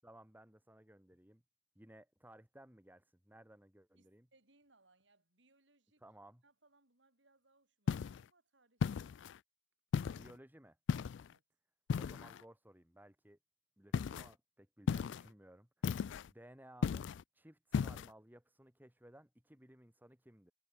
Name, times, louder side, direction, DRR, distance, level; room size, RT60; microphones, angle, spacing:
voice 1, 0.0-1.4 1.7-4.3 6.0-6.4 10.2-10.8 12.0-13.4 13.8-15.9 16.3-20.5, right 1 dB, 10° right, 2.6 m, -59 dB
voice 2, 3.9-6.0 6.4-9.3 11.2-11.4, right 2 dB, 70° right, 7.4 m, -72 dB
sound 1, 7.9-8.2 8.8-9.4 9.9-10.3 10.9-11.3 11.9-12.4 13.9-14.3 14.9-15.3 15.8-16.3 16.8-17.2 17.7-18.1, left 6 dB, 70° left, 0.3 m, -36 dB
head